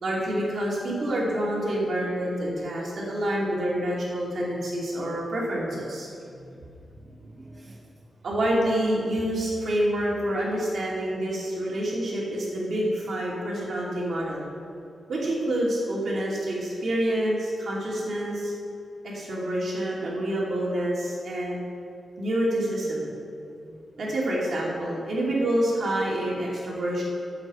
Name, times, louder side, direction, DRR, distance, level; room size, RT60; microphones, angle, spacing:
voice 1, 0.0-6.5 8.2-14.4 15.1-18.5 19.0-21.6 22.2-23.1 24.0-27.0, right 1 dB, 55° right, -4 dB, 2.9 m, -27 dB
voice 2, 6.2-8.0 23.6-24.2, right 1 dB, 20° right, -2 dB, 0.9 m, -50 dB
8.2 x 7.8 x 7.8 m, 2.5 s
wide cardioid pair, 165°, 0 cm